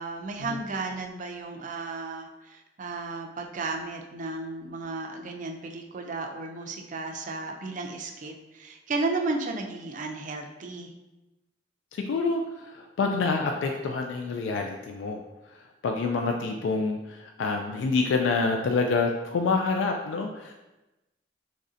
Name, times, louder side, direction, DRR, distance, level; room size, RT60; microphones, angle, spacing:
voice 1, 0.0-10.9, right 3 dB, 45° right, 3 dB, 0.4 m, -34 dB
voice 2, 11.9-15.2 15.8-20.5, left 4 dB, 85° left, 3 dB, 0.3 m, -27 dB
3.1 x 2.7 x 3.7 m, 1.0 s
head